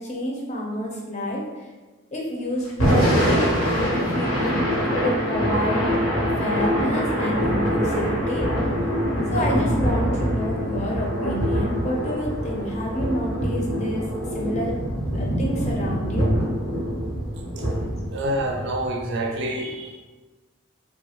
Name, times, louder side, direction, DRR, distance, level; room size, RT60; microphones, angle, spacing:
voice 1, 0.0-1.7 2.1-5.8 6.4-8.7 9.3-14.0 14.3-14.8 15.1-16.3, equal, 30° left, -2 dB, 0.6 m, -29 dB
Thunder / Rain, 2.7-18.9, equal, 85° left, 1.0 m, -24 dB
voice 2, 18.1-20.0, right 1 dB, 55° right, 2 dB, 0.4 m, -27 dB
3.5 x 2.3 x 2.9 m, 1.2 s
head